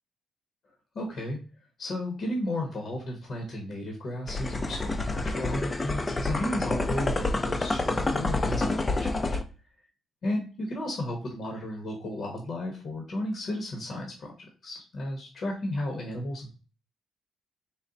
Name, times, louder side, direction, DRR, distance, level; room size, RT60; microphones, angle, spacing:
voice 1, 0.9-1.4 1.8-9.4 10.2-14.3 14.6-16.5, left 1 dB, 55° left, 1 dB, 1.0 m, -34 dB
sound 1, 4.3-9.4, left 2 dB, 25° left, 0.4 m, -28 dB
4.0 x 2.1 x 3.8 m, 0.36 s
cardioid pair, 90°, 0 cm